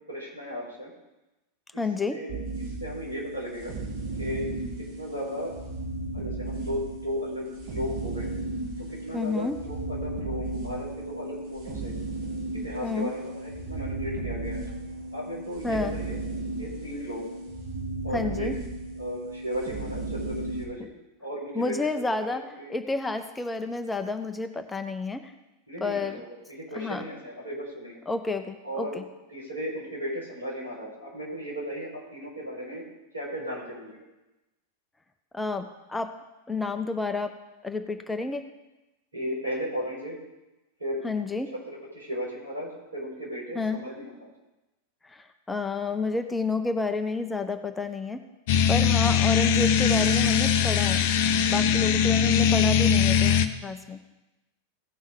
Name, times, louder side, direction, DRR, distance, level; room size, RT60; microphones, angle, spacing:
voice 1, 0.1-0.9 1.7-1.8 2.1-3.7 4.2-4.5 4.9-5.5 6.1-8.3 8.8-11.9 12.5-14.8 15.1-16.2 16.6-17.3 18.0-18.5 19.0-20.9 21.2-21.7 22.6-22.8 25.7-28.0 28.6-29.0 29.3-32.8 33.1-34.0 39.1-40.2 40.8-41.0 41.7-44.3, equal, 80° right, -5 dB, 4.5 m, -35 dB
voice 2, 1.8-2.2 9.1-9.6 12.8-13.1 15.6-16.0 18.1-18.6 21.5-25.3 25.8-26.2 26.7-27.1 28.1-29.0 35.3-36.1 36.5-37.4 37.6-38.5 41.0-41.5 43.5-43.8 45.0-48.2 48.7-51.0 51.5-54.0, left 3 dB, 10° left, 8 dB, 0.7 m, -30 dB
sound 1, 2.3-20.7, right 2 dB, 45° right, 1.6 m, -35 dB
sound 2, 48.5-53.5, left 8 dB, 50° left, 0.6 m, -21 dB
16.5 x 5.6 x 4.6 m, 1.0 s
figure-of-eight pair, 90°, 0 cm